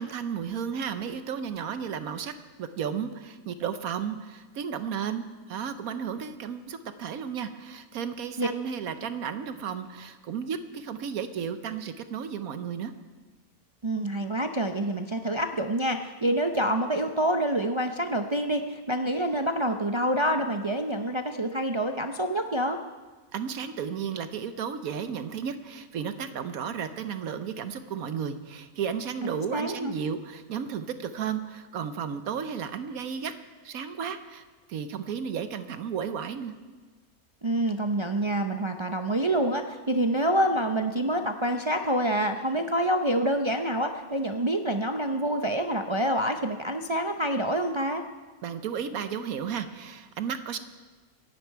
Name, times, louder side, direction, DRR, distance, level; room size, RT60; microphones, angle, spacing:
voice 1, 0.0-12.9 23.3-33.3 33.6-34.4 34.7-36.5 48.4-50.6, right 7 dB, 80° right, 10 dB, 1.3 m, -33 dB
voice 2, 13.8-22.8 29.2-30.0 37.4-48.0, right 1 dB, 40° right, 5 dB, 0.4 m, -27 dB
25.5 x 11.0 x 4.6 m, 1.3 s
omnidirectional pair, 1.5 m